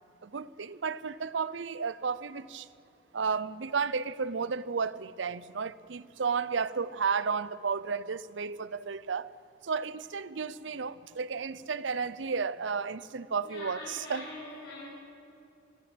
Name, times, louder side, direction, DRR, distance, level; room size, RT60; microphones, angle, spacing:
voice 1, 0.2-2.7 3.1-9.3 9.6-14.3, right 5 dB, 80° right, 0.6 m, -33 dB
voice 2, 13.4-14.9, left 2 dB, 70° left, 5.3 m, -43 dB
26.0 x 13.0 x 7.9 m
head